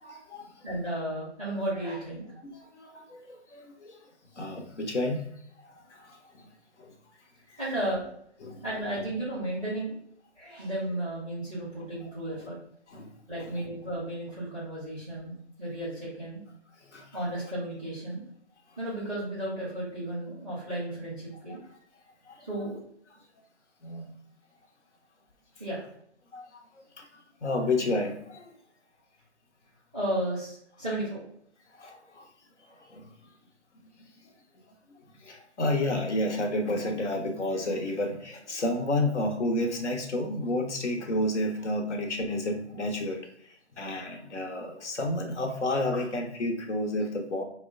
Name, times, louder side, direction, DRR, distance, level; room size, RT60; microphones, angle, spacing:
voice 1, 0.0-0.6 2.4-4.0 4.4-5.2 5.8-6.4 6.8-6.9 8.4-8.6 12.0-12.1 12.9-13.1 13.4-13.5 16.9-17.1 21.5-21.6 22.3-22.5 23.8-24.1 26.3-26.6 27.0-27.1 27.4-28.5 31.8-32.3 32.7-33.1 35.2-43.2 43.4-47.4, left 1 dB, 75° left, 2 dB, 0.9 m, -31 dB
voice 2, 0.6-2.3 7.6-8.1 8.6-10.0 10.4-12.6 13.3-15.3 15.6-16.4 17.1-18.3 18.8-21.6 22.4-22.8 25.6-25.8 29.9-31.2, right 1 dB, 5° left, -10 dB, 0.5 m, -33 dB
2.9 x 2.1 x 3.8 m, 0.69 s
figure-of-eight pair, 160°, 35 cm